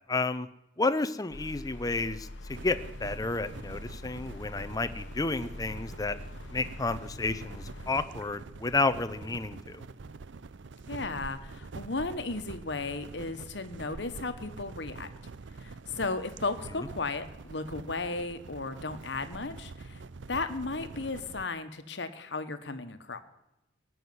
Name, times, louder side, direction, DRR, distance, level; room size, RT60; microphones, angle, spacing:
voice 1, 0.1-0.5 0.8-6.2 6.5-9.8, left 3 dB, 20° left, 11 dB, 0.6 m, -31 dB
sound 1, 1.3-8.1, left 1 dB, 90° left, 1.0 m, -44 dB
sound 2, 2.5-21.5, right 4 dB, 80° right, 0.6 m, -45 dB
voice 2, 10.9-15.1 15.6-20.0 20.3-23.2, left 3 dB, 70° left, 10 dB, 1.3 m, -35 dB
18.5 x 6.3 x 9.6 m, 0.92 s
head